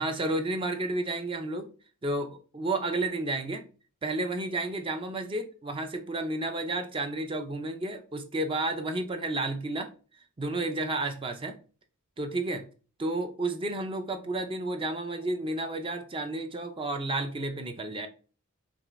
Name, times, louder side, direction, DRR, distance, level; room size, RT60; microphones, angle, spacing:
voice 1, 0.0-1.7 2.0-3.7 4.0-9.9 10.4-11.6 12.2-12.6 13.0-18.1, right 2 dB, 25° right, 0.4 m, -31 dB
4.8 x 3.0 x 2.5 m
head